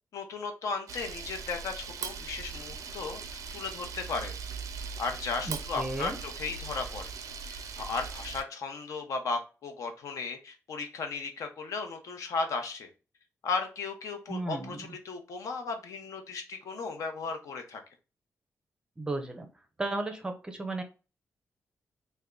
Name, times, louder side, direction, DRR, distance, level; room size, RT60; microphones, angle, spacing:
voice 1, 0.1-4.4 5.0-7.1 7.5-12.9 13.4-17.8, left 4 dB, 75° left, 5 dB, 0.7 m, -35 dB
Camera, 0.9-8.4, right 5 dB, 85° right, 0.4 m, -40 dB
voice 2, 5.4-6.2 14.3-15.0 19.0-19.5 19.8-20.8, right 2 dB, 15° right, 5 dB, 0.5 m, -34 dB
3.4 x 2.2 x 3.6 m, 0.32 s
wide cardioid pair, 170°, 6 cm